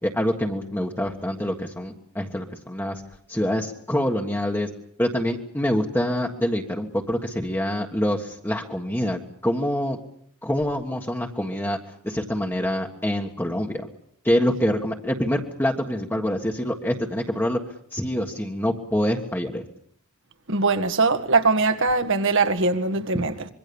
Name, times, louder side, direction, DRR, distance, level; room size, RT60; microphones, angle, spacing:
voice 1, 0.0-3.0 3.3-4.7 5.0-10.0 10.4-11.8 12.0-13.9 14.2-17.6 17.9-19.7 23.1-23.2, equal, 10° left, 1.5 m, -25 dB
voice 2, 20.5-23.5, right 3 dB, 60° right, 1.8 m, -21 dB
25.5 x 23.0 x 7.1 m
head